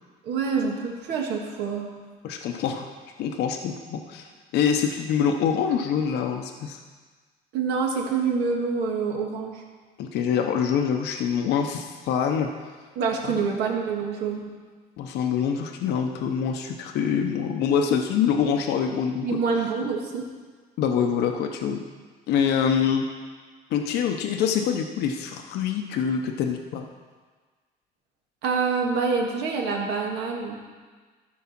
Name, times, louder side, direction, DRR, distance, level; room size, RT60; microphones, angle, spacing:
voice 1, 0.2-1.9 7.5-9.6 12.9-14.5 19.2-20.3 28.4-30.6, right 5 dB, 85° right, 0 dB, 1.7 m, -26 dB
voice 2, 2.2-2.9 3.2-6.8 10.0-12.5 15.0-19.4 20.8-21.8 22.3-23.1 23.7-26.9, left 7 dB, 80° left, 4 dB, 0.8 m, -25 dB
13.5 x 4.8 x 5.9 m, 1.5 s
cardioid pair, 110°, 17 cm